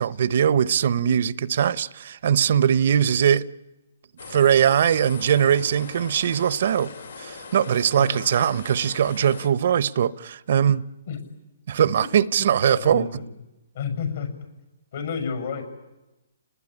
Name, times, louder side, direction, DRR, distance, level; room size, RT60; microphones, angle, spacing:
voice 1, 0.0-3.4 4.3-6.9 7.2-10.8 11.7-13.1, right 9 dB, 60° right, 0.9 m, -21 dB
sound 1, 4.2-9.5, left 4 dB, 85° left, 4.9 m, -40 dB
voice 2, 7.8-8.2 8.8-8.9 11.1-11.2 12.0-12.1 12.3-13.3 13.7-14.3 14.9-15.6, left 6 dB, 60° left, 6.7 m, -31 dB
29.5 x 19.5 x 9.9 m
hypercardioid pair, 150°, 0 cm